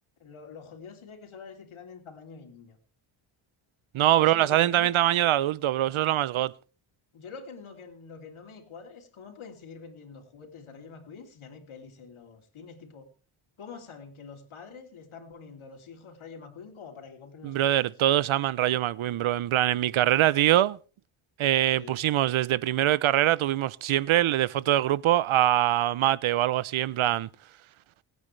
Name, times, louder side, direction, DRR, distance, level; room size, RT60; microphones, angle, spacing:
voice 1, 0.2-2.8 4.2-4.9 7.1-13.1 13.6-17.7 21.7-22.0, left 5 dB, 70° left, 3.3 m, -46 dB
voice 2, 3.9-6.5 17.4-20.8 21.4-27.3, right 13 dB, 70° right, 0.7 m, -23 dB
27.0 x 9.5 x 3.3 m
cardioid pair, 85°, 50 cm